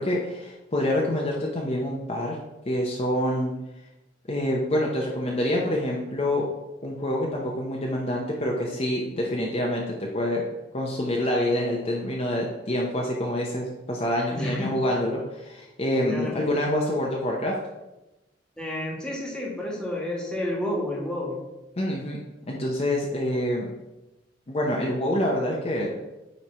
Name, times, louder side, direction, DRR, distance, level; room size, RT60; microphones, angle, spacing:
voice 1, 0.0-2.4 2.7-3.5 4.3-6.5 6.8-10.4 10.7-17.6 21.8-22.2 22.5-23.7 24.5-26.0, left 1 dB, 35° left, -2 dB, 0.8 m, -26 dB
voice 2, 14.3-14.7 16.0-16.4 18.6-21.4, left 1 dB, 5° left, -3 dB, 1.5 m, -30 dB
9.1 x 3.3 x 4.3 m, 0.98 s
head